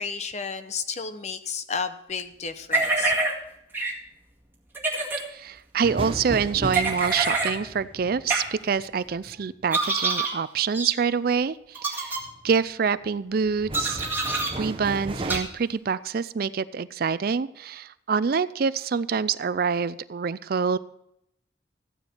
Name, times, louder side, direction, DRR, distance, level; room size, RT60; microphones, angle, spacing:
voice 1, 0.0-3.1, left 5 dB, 40° left, 10 dB, 0.8 m, -32 dB
sound 1, 2.7-3.3 3.7-3.9 4.7-5.2 6.7-7.5 8.3-8.4 9.7-10.3 10.7-10.9 11.8-12.2 13.7-14.5 15.3-15.4, right 3 dB, 10° right, 2.0 m, -25 dB
voice 2, 5.3-14.0 14.6-20.8, right 6 dB, 55° right, 16 dB, 0.4 m, -26 dB
sound 2, 5.8-9.7 12.2-12.6 13.1-15.4, right 1 dB, 30° right, 0.9 m, -35 dB
14.5 x 9.6 x 4.4 m, 0.79 s
head